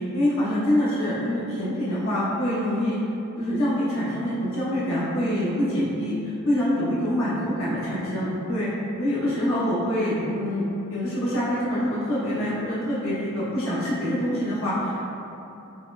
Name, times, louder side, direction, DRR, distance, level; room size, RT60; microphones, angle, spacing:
voice 1, 0.0-3.0 3.4-8.7 9.0-15.0, equal, 70° left, -9 dB, 0.8 m, -25 dB
4.1 x 3.0 x 2.6 m, 2.8 s
head